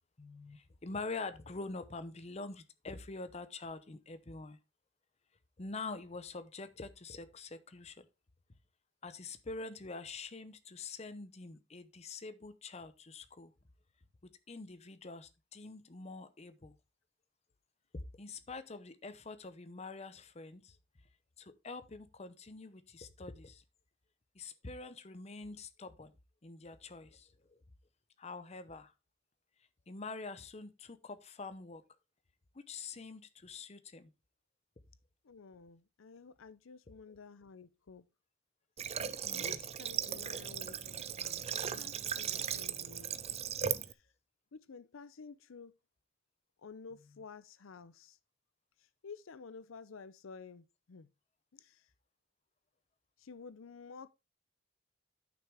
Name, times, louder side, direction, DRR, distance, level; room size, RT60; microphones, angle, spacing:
voice 1, 0.2-4.6 5.6-8.0 9.0-13.5 14.5-16.8 18.1-20.8 21.4-23.6 24.3-26.1 26.4-27.6 28.2-28.9 29.9-31.8 32.5-34.1 39.2-39.6, left 3 dB, 30° left, 0.7 m, -45 dB
voice 2, 35.2-38.1 39.2-43.4 43.9-44.1 44.5-45.7 46.6-48.2 48.8-51.1 51.5-51.9 53.2-54.1, left 5 dB, 80° left, 0.6 m, -52 dB
Water / Water tap faucet, 38.8-43.9, right 8 dB, 30° right, 0.5 m, -37 dB
10.5 x 6.1 x 3.5 m
head